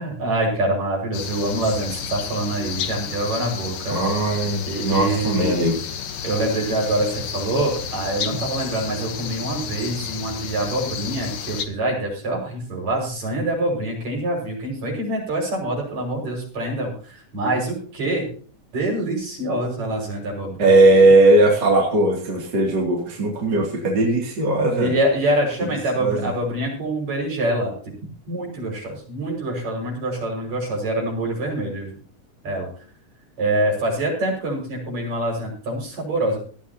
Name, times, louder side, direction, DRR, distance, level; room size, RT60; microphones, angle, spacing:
voice 1, 0.0-4.0 4.7-5.5 6.2-18.3 18.7-20.8 24.8-27.9 28.3-32.0 32.4-32.7 33.4-36.4, right 1 dB, 60° right, -1 dB, 7.4 m, -25 dB
sound 1, 1.1-11.7, left 7 dB, 65° left, 2.4 m, -32 dB
voice 2, 3.9-5.8 20.6-24.9 26.0-26.3, right 2 dB, 35° right, -1 dB, 3.3 m, -18 dB
18.5 x 13.5 x 3.0 m, 0.43 s
omnidirectional pair, 3.6 m